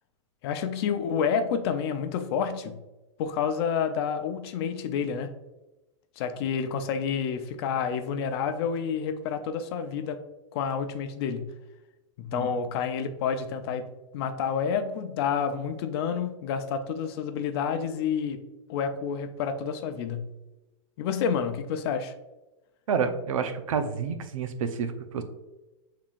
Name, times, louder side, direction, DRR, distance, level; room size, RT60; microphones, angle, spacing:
voice 1, 0.4-2.8 3.2-5.3 6.2-10.2 10.5-11.5 12.2-13.8 14.1-18.4 18.7-20.3 21.0-22.1, left 7 dB, 50° left, 8 dB, 0.6 m, -29 dB
voice 2, 22.9-25.2, right 6 dB, 85° right, 8 dB, 0.6 m, -29 dB
5.6 x 3.7 x 2.4 m, 1.0 s
hypercardioid pair, 145°, 17 cm